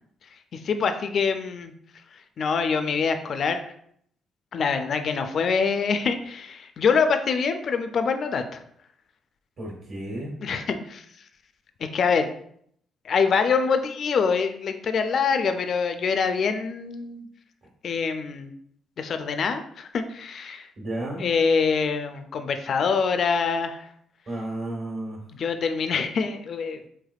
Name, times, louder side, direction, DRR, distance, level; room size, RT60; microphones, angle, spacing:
voice 1, 0.5-1.7 2.4-3.6 4.5-8.6 10.4-11.0 11.8-12.3 13.0-17.3 17.8-18.5 19.0-20.7 21.2-23.9 25.4-26.9, left 5 dB, 55° left, 8 dB, 0.3 m, -25 dB
voice 2, 9.6-10.4 17.6-17.7 20.8-21.3 24.3-25.3, right 1 dB, 55° right, -1 dB, 1.3 m, -33 dB
3.3 x 3.2 x 2.3 m, 0.67 s
cardioid pair, 90°, 0 cm